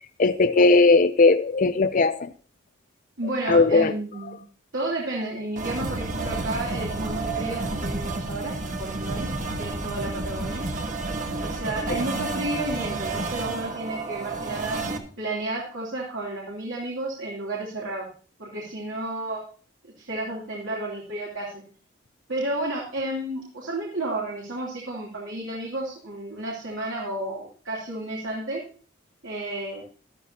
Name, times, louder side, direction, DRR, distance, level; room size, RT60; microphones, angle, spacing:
voice 1, 0.2-2.3 3.5-3.9, left 3 dB, 40° left, 10 dB, 0.5 m, -18 dB
voice 2, 3.2-4.4 4.7-9.3 9.6-10.7 11.4-14.8 15.2-18.1 18.4-19.4 20.0-21.6 22.3-28.6 29.2-29.8, right 1 dB, 70° right, -4 dB, 3.0 m, -32 dB
sound 1, 5.6-15.0, right 3 dB, 40° right, 1.3 m, -30 dB
13.0 x 12.5 x 2.9 m, 0.41 s
head